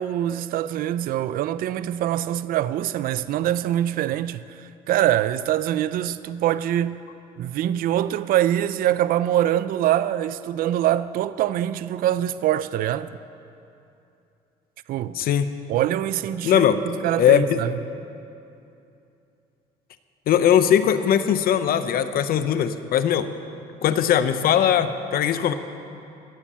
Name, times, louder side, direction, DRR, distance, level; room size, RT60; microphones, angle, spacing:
voice 1, 0.0-7.0 7.4-13.1 14.9-15.2 15.7-17.8, right 12 dB, 60° right, 0.4 m, -24 dB
voice 2, 15.1-15.6 16.4-16.8 17.2-17.6 20.3-23.3 23.8-25.5, left 9 dB, 60° left, 0.7 m, -20 dB
17.0 x 7.2 x 7.4 m
cardioid pair, 110°, 17 cm